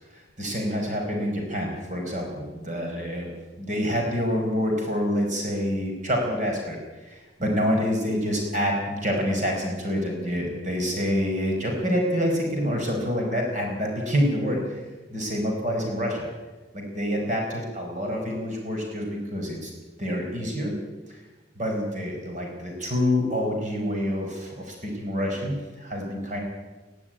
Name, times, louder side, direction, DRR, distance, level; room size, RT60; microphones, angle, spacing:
voice 1, 0.1-3.3 3.6-14.8 15.1-16.3 16.7-19.7 20.0-20.7 21.1-21.2 21.5-26.4, equal, 40° right, 1 dB, 5.0 m, -27 dB
21.0 x 14.5 x 9.1 m, 1.2 s
head